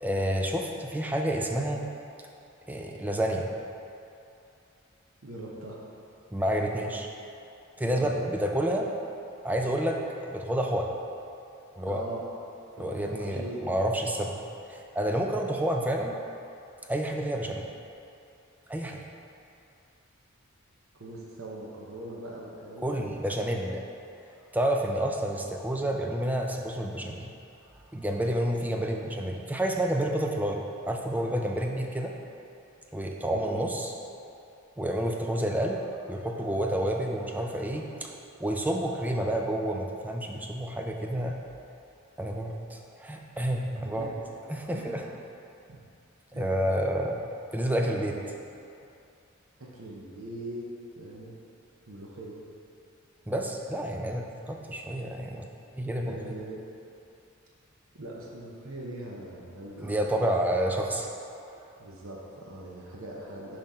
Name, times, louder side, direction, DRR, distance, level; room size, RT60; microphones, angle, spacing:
voice 1, 0.0-1.8 2.7-3.5 6.3-7.1 7.8-8.9 9.4-11.0 11.8-12.0 12.8-14.4 14.7-16.1 16.9-17.7 18.7-19.0 22.8-23.8 24.5-27.3 27.9-32.1 32.9-33.9 34.8-35.8 36.1-38.1 38.4-41.3 42.2-44.1 44.5-45.0 46.3-47.2 47.5-48.2 53.3-55.4 55.7-56.2 59.8-61.1, right 1 dB, 10° right, 1 dB, 0.4 m, -29 dB
voice 2, 5.2-5.8 7.8-8.2 11.9-12.2 12.8-13.6 21.0-23.0 33.3-33.6 44.0-44.1 44.7-45.1 45.7-45.8 46.3-46.5 47.6-48.2 49.6-50.6 51.0-51.3 51.9-52.4 56.0-56.7 57.9-60.0 61.8-63.6, right 1 dB, 75° right, -3 dB, 0.9 m, -41 dB
5.9 x 5.2 x 4.2 m, 2.7 s
head